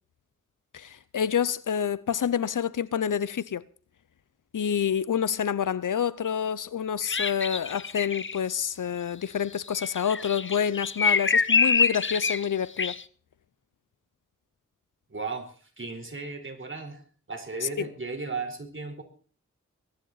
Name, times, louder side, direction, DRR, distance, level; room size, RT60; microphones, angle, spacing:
voice 1, 0.7-3.6 4.5-13.0 17.8-17.9, left 8 dB, 90° left, 0.7 m, -28 dB
sound 1, 7.0-8.4 9.8-12.5 12.8-13.0, left 5 dB, 40° left, 0.8 m, -25 dB
voice 2, 15.1-17.0 17.3-19.0, right 4 dB, 40° right, 4.2 m, -35 dB
23.0 x 10.5 x 4.0 m
wide cardioid pair, 55°, 31 cm